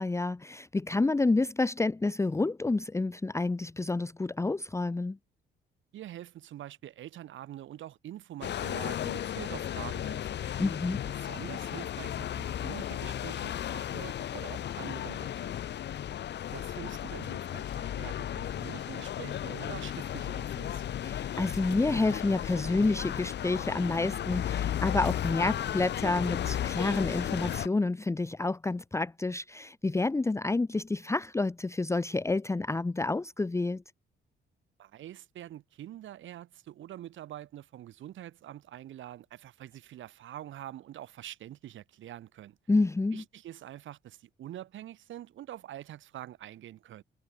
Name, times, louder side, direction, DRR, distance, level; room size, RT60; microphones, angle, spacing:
voice 1, 0.0-5.2 10.6-11.0 21.0-33.8 42.7-43.2, left 3 dB, 15° left, 0.7 m, -29 dB
voice 2, 5.9-10.6 11.1-15.5 16.5-20.8 34.8-42.6 43.1-47.0, right 12 dB, 75° right, 2.2 m, -45 dB
sound 1, 8.4-27.7, left 10 dB, 60° left, 1.1 m, -34 dB
cardioid pair, 90°, 20 cm